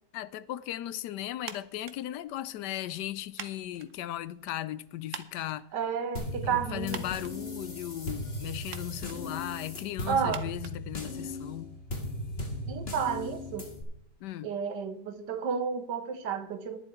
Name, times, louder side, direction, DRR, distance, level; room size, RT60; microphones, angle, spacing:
voice 1, 0.1-5.7 6.4-11.8 14.2-14.5, left 13 dB, 75° left, 1.2 m, -37 dB
sound 1, 1.4-11.6, right 8 dB, 55° right, 1.0 m, -49 dB
voice 2, 5.7-7.0 10.1-10.4 12.7-13.7 14.4-16.8, right 7 dB, 80° right, 1.6 m, -31 dB
sound 2, 6.2-13.8, left 1 dB, 35° left, 2.0 m, -38 dB
11.0 x 10.5 x 4.4 m
omnidirectional pair, 1.9 m